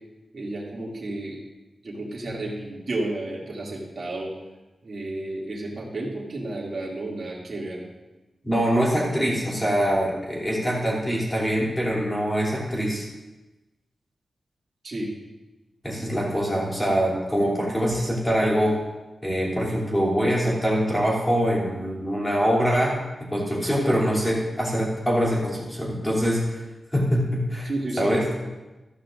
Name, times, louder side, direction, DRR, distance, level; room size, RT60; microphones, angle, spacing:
voice 1, 0.3-1.4 1.8-4.3 4.8-7.8 14.8-15.1 16.0-16.1 27.6-28.4, right 2 dB, 45° right, -3 dB, 2.5 m, -32 dB
voice 2, 8.4-13.1 15.8-18.8 19.2-23.0 23.3-26.6 26.9-27.7 28.0-28.2, equal, 10° left, -4 dB, 3.0 m, -24 dB
14.0 x 13.5 x 2.6 m, 1.1 s
wide cardioid pair, 175°, 0 cm